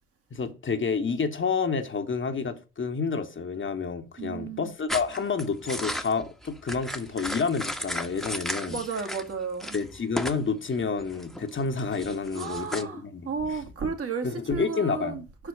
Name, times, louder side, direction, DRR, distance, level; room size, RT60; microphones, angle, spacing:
voice 1, 0.3-8.8 9.7-13.6 14.2-15.2, left 5 dB, 40° left, 1.4 m, -29 dB
voice 2, 4.2-4.7 8.7-9.8 12.3-15.2, right 5 dB, 50° right, 2.0 m, -33 dB
sound 1, 4.9-9.3 9.6-10.5 10.7-12.8, equal, ahead, 1.3 m, -35 dB
6.0 x 5.0 x 6.2 m
hypercardioid pair, 40°, 30 cm